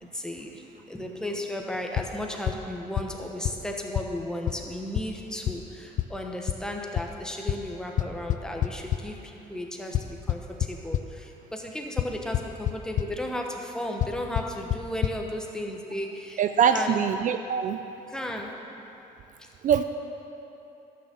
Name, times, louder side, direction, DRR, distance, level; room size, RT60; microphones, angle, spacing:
voice 1, 0.0-16.4 16.7-17.0 18.1-18.6 19.4-19.5, left 1 dB, 5° left, 1 dB, 1.1 m, -35 dB
sound 1, 2.0-2.1 2.5-2.6 3.0-3.1 3.4-3.5 4.0-4.1 4.5-4.6 5.0-5.1 5.5-5.6 6.0-6.1 6.5-6.6 7.0-7.1 7.5-7.6 8.0-9.0 9.9-11.0 12.0-12.1 12.3-12.7 13.0-13.1 14.0-14.1 14.4-14.5 14.7-14.8 15.0-15.1, left 12 dB, 50° left, 0.4 m, -25 dB
voice 2, 16.4-17.8 19.6-19.8, right 7 dB, 50° right, 9 dB, 0.4 m, -23 dB
11.0 x 6.3 x 7.0 m, 2.9 s
cardioid pair, 110°, 17 cm